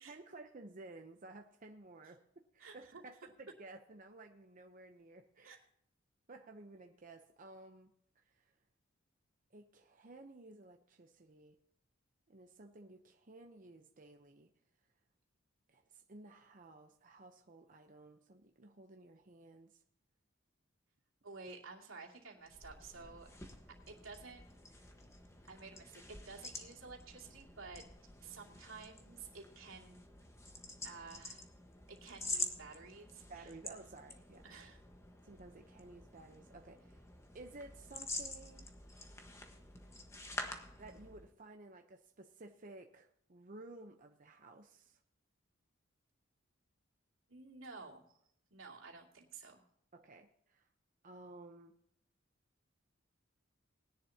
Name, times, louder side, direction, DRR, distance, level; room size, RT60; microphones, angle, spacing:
voice 1, 0.0-5.6 6.3-7.9 8.2-8.6 9.5-11.6 12.3-14.5 15.7-19.8 33.3-34.5 35.2-37.0 37.3-38.7 40.8-45.0 49.9-50.7 51.0-51.8, right 2 dB, 40° right, 4 dB, 0.8 m, -55 dB
voice 2, 2.6-3.0 5.4-5.6 21.2-23.3 23.7-24.9 25.5-27.9 28.2-30.0 30.8-31.5 31.9-33.5 34.4-34.8 47.3-48.2 48.5-49.6, right 4 dB, 85° right, -1 dB, 2.6 m, -52 dB
sound 1, 22.4-41.3, left 2 dB, 15° left, 1.3 m, -48 dB
19.5 x 10.5 x 2.8 m, 0.71 s
head